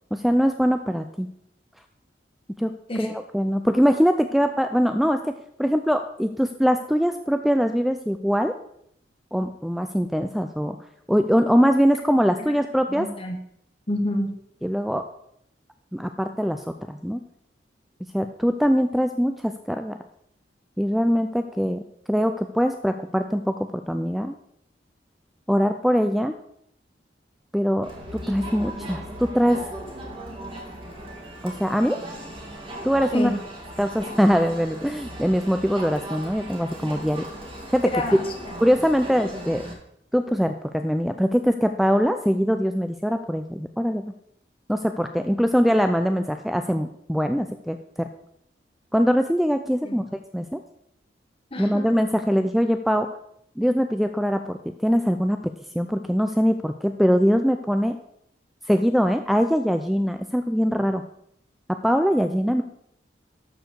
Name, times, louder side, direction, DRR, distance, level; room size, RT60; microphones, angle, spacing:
voice 1, 0.1-1.3 2.6-2.7 3.0-8.5 9.3-10.8 11.1-13.1 14.6-15.1 15.9-17.2 18.1-20.0 20.8-24.4 25.5-26.3 27.5-29.6 31.4-32.0 32.8-33.3 33.8-37.3 37.7-37.9 38.6-39.7 40.1-44.1 44.7-48.1 48.9-50.0 50.3-50.6 51.6-53.1 53.6-55.4 55.7-58.0 58.7-61.0 61.7-62.6, equal, ahead, 7 dB, 0.4 m, -22 dB
voice 2, 12.9-13.4 13.9-14.3 33.1-33.4 37.8-38.3 49.8-50.0 51.5-51.9, left 1 dB, 30° left, 2 dB, 1.3 m, -28 dB
Crowd, 27.8-39.7, right 1 dB, 30° right, 2.4 m, -37 dB
12.5 x 4.9 x 6.7 m, 0.73 s
head